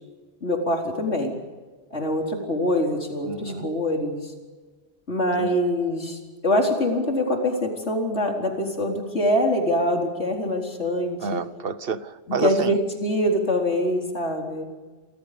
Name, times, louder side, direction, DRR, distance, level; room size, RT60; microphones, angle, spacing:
voice 1, 0.4-1.3 1.9-4.3 5.1-11.4 12.3-14.7, left 1 dB, 80° left, 1 dB, 4.6 m, -24 dB
voice 2, 3.2-3.7 5.4-5.6 11.2-12.8, right 5 dB, 55° right, 13 dB, 1.3 m, -29 dB
29.0 x 25.0 x 5.2 m, 1.3 s
omnidirectional pair, 1.1 m